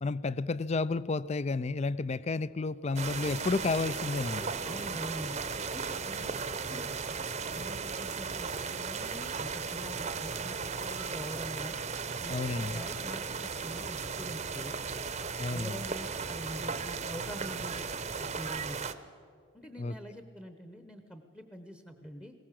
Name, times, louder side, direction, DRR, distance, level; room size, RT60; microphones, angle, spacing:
voice 1, 0.0-4.5 12.3-12.8 15.4-15.8 19.8-19.9, left 3 dB, 30° left, 18 dB, 0.4 m, -31 dB
sound 1, 3.0-18.9, right 5 dB, 35° right, 0.8 m, -36 dB
voice 2, 4.6-5.4 5.7-6.3 6.7-6.9 7.5-11.8 12.2-14.8 15.5-17.8 18.2-18.9 19.5-22.3, equal, 10° left, 7 dB, 0.9 m, -44 dB
20.5 x 18.0 x 7.5 m, 2.4 s
head